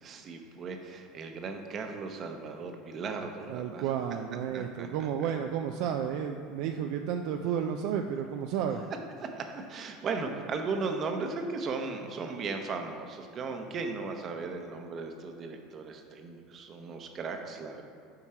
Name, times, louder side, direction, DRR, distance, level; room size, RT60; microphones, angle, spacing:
voice 1, 0.0-3.8 4.5-4.9 5.2-5.3 9.2-17.8, right 4 dB, 40° right, 4 dB, 0.9 m, -36 dB
voice 2, 3.5-8.8, right 8 dB, 65° right, 4 dB, 0.4 m, -32 dB
7.6 x 4.5 x 4.4 m, 2.5 s
supercardioid pair, 110°, 0 cm